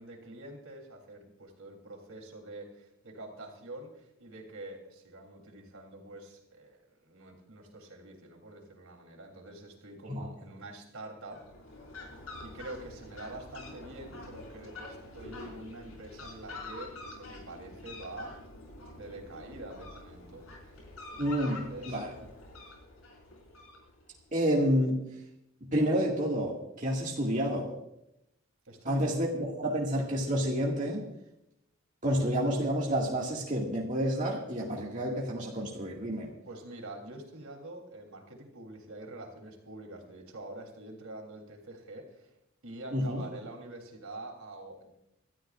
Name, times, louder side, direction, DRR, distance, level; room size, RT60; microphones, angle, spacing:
voice 1, 0.0-11.8 12.4-18.4 18.9-20.4 21.7-22.0 28.6-29.2 36.4-42.3 42.6-44.9, right 2 dB, 80° right, 2 dB, 3.4 m, -46 dB
Fowl, 11.2-24.2, left 2 dB, 90° left, 5.1 m, -47 dB
voice 2, 21.2-22.1 24.3-25.1 25.7-27.7 28.9-31.1 32.0-36.3 42.9-43.2, equal, 35° right, -3 dB, 2.0 m, -29 dB
26.5 x 13.5 x 2.5 m, 0.83 s
head